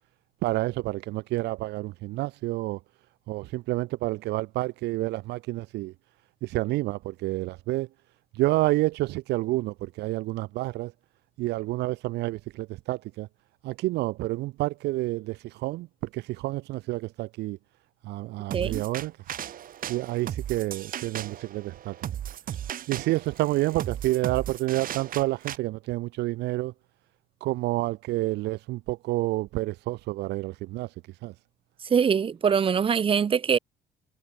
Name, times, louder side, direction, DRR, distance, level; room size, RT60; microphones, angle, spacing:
voice 1, 0.4-2.8 3.3-5.9 6.4-7.9 8.3-10.9 11.4-13.3 13.6-15.9 16.1-17.6 18.0-19.1 19.9-21.9 22.9-26.7 27.4-30.9 31.2-31.3, right 19 dB, 85° right, 1.3 m, -29 dB
voice 2, 18.5-18.8 31.9-33.6, right 7 dB, 30° right, 0.9 m, -23 dB
sound 1, 18.5-25.6, right 10 dB, 55° right, 3.5 m, -36 dB
cardioid pair, 110°, 17 cm